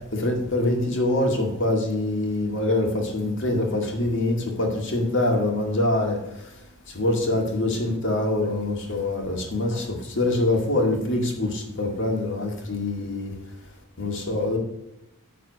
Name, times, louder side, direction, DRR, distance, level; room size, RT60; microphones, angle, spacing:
voice 1, 0.1-6.2 6.9-13.3 14.0-14.6, left 2 dB, 60° left, 2.1 m, -24 dB
9.5 x 4.1 x 6.5 m
head